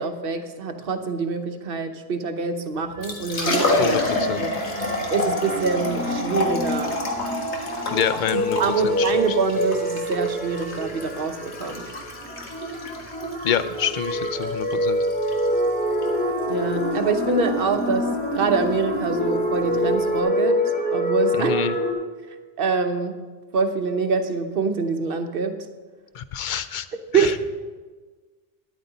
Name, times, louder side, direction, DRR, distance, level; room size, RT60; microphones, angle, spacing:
voice 1, 0.0-4.0 4.4-4.5 5.1-7.0 8.6-11.9 16.5-20.6 20.9-21.5 22.6-23.2 23.5-25.6 27.1-27.4, right 4 dB, 60° right, 7 dB, 1.0 m, -25 dB
Liquid, 2.8-20.2, left 2 dB, 80° left, 1.8 m, -30 dB
sound 1, 3.0-21.9, equal, 10° left, 1.1 m, -27 dB
voice 2, 3.8-4.5 7.9-8.6 8.8-9.1 13.4-15.0 21.4-21.8 26.1-26.9 27.1-27.4, left 9 dB, 55° left, 12 dB, 0.6 m, -27 dB
12.5 x 10.0 x 4.0 m, 1.4 s
omnidirectional pair, 1.1 m